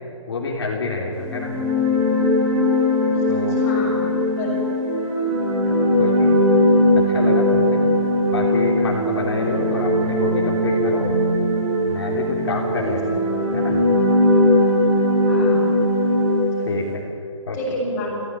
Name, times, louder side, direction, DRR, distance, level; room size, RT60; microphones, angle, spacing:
voice 1, 0.3-1.5 3.3-3.6 5.7-6.3 7.1-7.8 8.3-11.1 11.9-13.2 13.5-13.8 16.7-17.0 17.5-17.6, left 3 dB, 50° left, -1 dB, 3.6 m, -27 dB
sound 1, 1.2-16.9, left 1 dB, 15° right, 3.3 m, -19 dB
voice 2, 3.1-4.1 4.4-4.5 9.4-9.5 12.7-13.0 15.2-15.7 16.6-16.7 17.5-18.1, left 1 dB, 15° left, -5 dB, 6.7 m, -30 dB
26.0 x 16.0 x 9.9 m, 2.6 s
hypercardioid pair, 175°, 16 cm